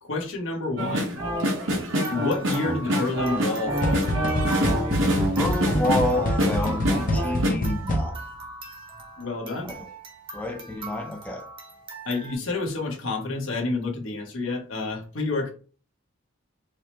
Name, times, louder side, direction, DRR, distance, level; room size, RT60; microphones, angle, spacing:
voice 1, 0.0-1.2 2.1-4.2 9.2-9.7 10.9-11.0 12.0-15.5, left 3 dB, 70° left, 1.1 m, -29 dB
sound 1, 0.8-7.5, equal, 70° right, 1.1 m, -26 dB
sound 2, 1.9-12.4, right 3 dB, 25° right, 0.9 m, -42 dB
sound 3, 3.8-8.4, equal, 40° left, 0.7 m, -27 dB
voice 2, 5.1-8.2 9.7-9.8 10.3-11.4, left 1 dB, 5° left, 0.5 m, -29 dB
4.7 x 2.1 x 3.0 m
head